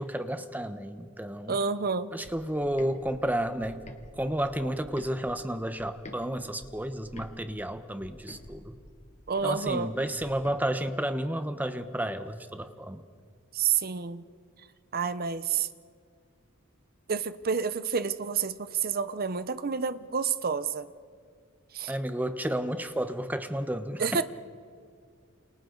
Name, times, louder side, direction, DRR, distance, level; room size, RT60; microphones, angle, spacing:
voice 1, 0.0-1.6 2.1-3.8 4.2-8.8 9.4-13.0 21.9-24.2, right 1 dB, 10° right, 9 dB, 0.9 m, -31 dB
voice 2, 1.5-2.1 9.3-9.9 13.5-14.2 14.9-15.7 17.1-20.9 21.7-21.9 24.0-24.2, right 6 dB, 45° right, 13 dB, 0.8 m, -29 dB
sound 1, 2.2-6.2 6.6-10.6, left 1 dB, 35° left, 1.7 m, -49 dB
29.0 x 28.0 x 3.9 m, 2.1 s
head